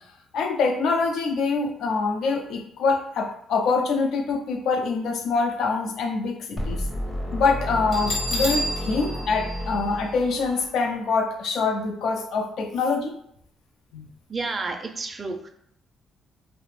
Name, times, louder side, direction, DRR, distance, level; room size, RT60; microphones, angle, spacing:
voice 1, 0.3-6.8 7.3-13.1 13.9-14.1, left 4 dB, 75° left, 4 dB, 0.4 m, -25 dB
sound 1, 6.6-10.6, equal, 30° left, 0.6 m, -31 dB
Bell, 7.9-10.6, equal, 55° left, 1.0 m, -31 dB
voice 2, 14.3-15.5, right 3 dB, 35° right, 5 dB, 0.4 m, -30 dB
2.4 x 2.1 x 3.1 m, 0.71 s
cardioid pair, 90°, 0 cm